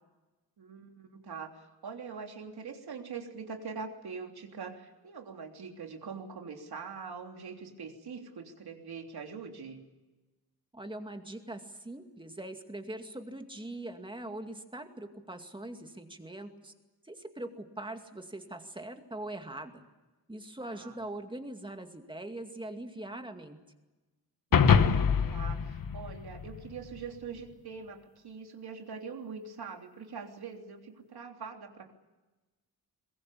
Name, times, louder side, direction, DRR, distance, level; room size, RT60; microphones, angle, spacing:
voice 1, 0.6-9.8 20.6-21.0 25.3-31.9, right 5 dB, 75° right, 3 dB, 3.3 m, -43 dB
voice 2, 10.7-16.7 17.0-19.8 20.3-23.6, right 1 dB, 10° right, 5 dB, 2.3 m, -42 dB
sound 1, 24.5-27.0, left 6 dB, 60° left, 1.3 m, -25 dB
22.5 x 22.0 x 8.6 m, 1.1 s
wide cardioid pair, 150°, 38 cm